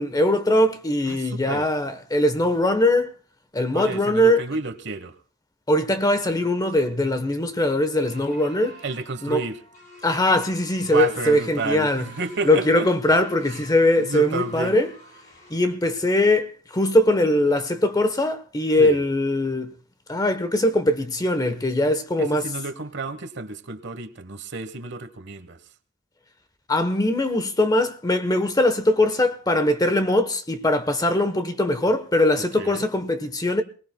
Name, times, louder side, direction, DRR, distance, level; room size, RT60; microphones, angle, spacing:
voice 1, 0.0-3.1 3.5-4.4 5.7-8.8 9.2-9.4 10.0-12.0 12.4-14.9 15.5-19.7 20.1-22.5 26.7-33.6, left 1 dB, 20° left, 1.0 m, -21 dB
voice 2, 1.1-1.7 3.7-5.2 8.8-9.6 10.8-12.9 13.5-13.6 14.0-14.8 18.8-19.0 22.2-25.7 32.4-32.9, right 3 dB, 65° right, 1.2 m, -31 dB
sound 1, 7.9-15.6, right 1 dB, 45° left, 5.7 m, -48 dB
27.5 x 18.5 x 2.2 m
head